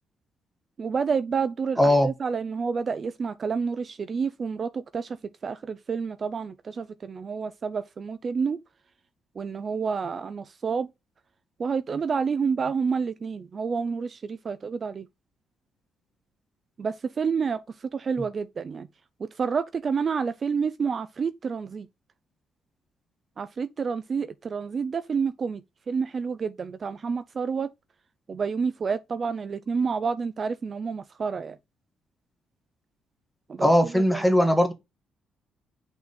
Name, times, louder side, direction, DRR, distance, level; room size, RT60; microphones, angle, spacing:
voice 1, 0.8-5.2 5.4-8.6 9.4-10.9 11.6-15.1 16.8-18.9 19.2-21.9 23.4-27.7 28.3-31.6 33.5-34.2, right 5 dB, 45° right, 0.5 m, -29 dB
voice 2, 1.8-2.1 33.6-34.7, equal, ahead, 1.8 m, -19 dB
6.0 x 3.9 x 4.0 m
cardioid pair, 90°, 0 cm